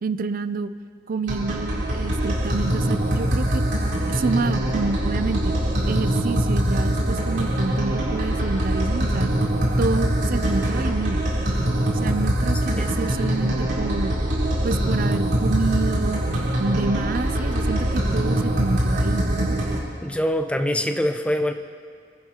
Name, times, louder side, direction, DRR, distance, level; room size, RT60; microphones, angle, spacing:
voice 1, 0.0-0.7 1.1-3.6 4.1-5.6 5.9-9.3 9.8-11.3 12.0-14.2 14.6-16.2 16.6-19.6, right 4 dB, 50° right, 13 dB, 0.4 m, -28 dB
sound 1, 1.3-19.8, right 1 dB, 65° right, 3.4 m, -23 dB
voice 2, 20.0-21.5, equal, 5° left, 7 dB, 0.5 m, -24 dB
29.5 x 10.5 x 2.9 m, 2.2 s
head